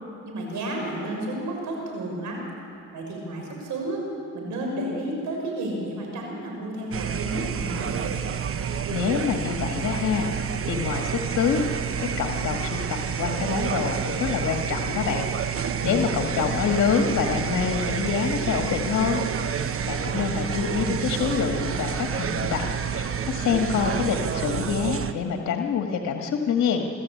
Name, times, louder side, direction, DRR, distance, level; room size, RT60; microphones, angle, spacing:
voice 1, 0.3-2.4 2.9-4.0 4.3-7.9 15.8-16.7, right 1 dB, 75° right, 0 dB, 6.3 m, -32 dB
sound 1, 6.9-25.1, right 7 dB, 50° right, 1.1 m, -29 dB
voice 2, 8.9-11.6 12.0-19.2 19.5-26.9, left 6 dB, 65° left, 2 dB, 1.8 m, -26 dB
25.5 x 13.5 x 8.6 m, 2.7 s
cardioid pair, 90°, 30 cm